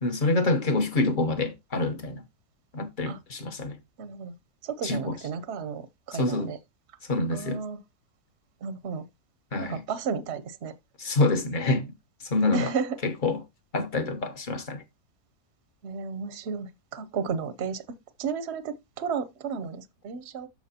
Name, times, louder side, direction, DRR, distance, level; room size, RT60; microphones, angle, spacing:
voice 1, 0.0-2.2 2.7-3.8 4.8-5.1 6.1-6.5 7.1-7.6 9.5-9.8 11.0-11.9 12.2-12.7 13.0-13.4 13.7-14.8, left 2 dB, 35° left, 1.0 m, -26 dB
voice 2, 4.0-4.3 4.6-6.6 7.3-7.8 8.6-9.1 9.6-10.7 12.5-13.0 15.8-17.8 18.2-20.5, right 6 dB, 55° right, 0.8 m, -33 dB
13.5 x 4.8 x 2.8 m
omnidirectional pair, 1.7 m